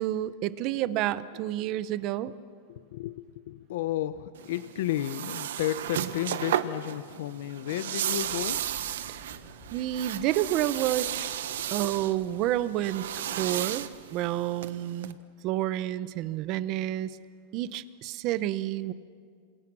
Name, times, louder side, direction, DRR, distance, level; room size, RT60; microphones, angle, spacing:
voice 1, 0.0-2.3 9.1-9.2 9.7-11.1 11.7-15.2 15.4-17.2 17.5-18.9, right 13 dB, 30° right, 16 dB, 0.8 m, -29 dB
voice 2, 2.7-8.6 11.6-11.9, left 13 dB, 60° left, 12 dB, 0.7 m, -33 dB
sound 1, 4.4-15.1, right 11 dB, 80° right, 1.2 m, -34 dB
sound 2, 8.1-14.3, left 2 dB, 15° left, 5.3 m, -55 dB
27.5 x 27.0 x 6.2 m, 2.1 s
supercardioid pair, 175°, 0 cm